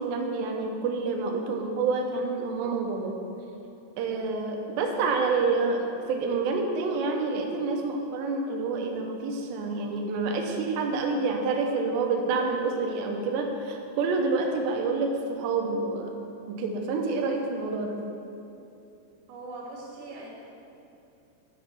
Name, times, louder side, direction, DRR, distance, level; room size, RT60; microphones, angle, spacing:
voice 1, 0.0-3.2 4.0-16.1 16.5-18.0, right 3 dB, 80° right, 2 dB, 2.6 m, -28 dB
voice 2, 19.3-20.3, right 2 dB, 55° right, -4 dB, 2.4 m, -41 dB
9.7 x 7.0 x 4.4 m, 2.7 s
omnidirectional pair, 5.9 m